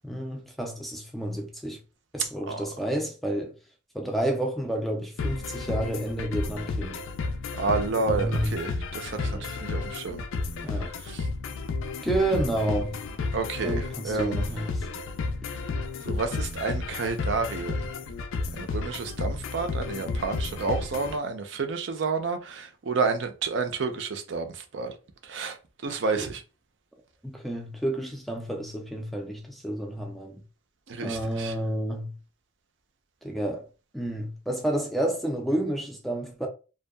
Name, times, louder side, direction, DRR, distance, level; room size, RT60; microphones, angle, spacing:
voice 1, 0.0-1.8 2.1-3.5 3.9-7.0 8.0-8.6 9.2-9.5 10.6-10.9 12.0-13.0 13.6-14.9 26.2-26.3 27.2-30.4 31.0-32.2 33.2-33.7 33.9-36.5, right 1 dB, ahead, 0.3 m, -30 dB
sound 1, 5.2-21.2, left 3 dB, 80° left, 0.4 m, -32 dB
voice 2, 7.6-10.2 11.0-11.3 13.3-14.5 16.1-17.9 18.6-24.9 25.2-25.6 25.8-26.4 30.9-31.5, right 4 dB, 65° right, 0.5 m, -30 dB
2.6 x 2.2 x 2.2 m
head